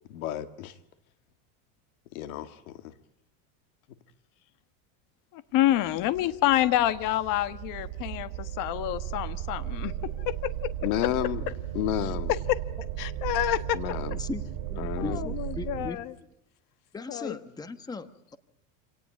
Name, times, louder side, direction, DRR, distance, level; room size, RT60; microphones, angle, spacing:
voice 1, 0.1-0.8 2.1-2.9 10.8-11.4 11.7-12.3 13.7-14.2 14.8-15.2, left 13 dB, 80° left, 2.2 m, -31 dB
voice 2, 5.3-10.7 12.3-12.6 13.0-13.8 15.0-16.1 17.1-17.3, left 14 dB, 50° left, 1.5 m, -28 dB
sound 1, 5.7-15.9, right 11 dB, 60° right, 2.8 m, -35 dB
voice 3, 14.7-16.0 16.9-18.4, left 3 dB, 10° left, 1.1 m, -38 dB
27.5 x 18.5 x 9.6 m
supercardioid pair, 145°, 42 cm